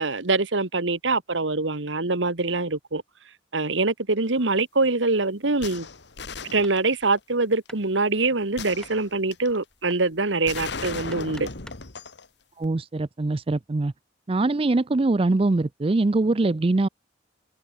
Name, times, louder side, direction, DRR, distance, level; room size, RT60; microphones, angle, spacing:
voice 1, 0.0-3.0 3.5-5.9 6.4-11.5, right 3 dB, 75° right, 1.8 m, -24 dB
sound 1, 5.6-7.2 8.6-9.6 10.5-12.3 12.6-12.7, left 4 dB, 65° left, 1.9 m, -36 dB
Hammer, 6.6-11.9, left 1 dB, 5° left, 6.8 m, -52 dB
voice 2, 12.6-13.9 14.3-16.9, right 2 dB, 30° right, 0.5 m, -23 dB
head